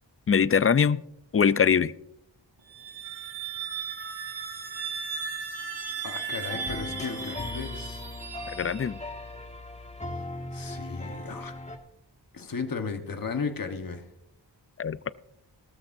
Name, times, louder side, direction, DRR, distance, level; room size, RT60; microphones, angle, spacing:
voice 1, 0.3-1.0 1.3-1.9 8.6-9.0 14.8-15.1, left 6 dB, 35° left, 17 dB, 0.4 m, -22 dB
sound 1, 2.6-9.2, right 6 dB, 75° right, 2.6 m, -36 dB
voice 2, 6.0-8.0 10.5-11.5 12.3-14.0, left 5 dB, 50° left, 6 dB, 1.3 m, -35 dB
sound 2, 6.5-11.8, left 2 dB, 15° left, 1.8 m, -38 dB
17.5 x 13.5 x 2.6 m, 0.72 s
wide cardioid pair, 95°, 43 cm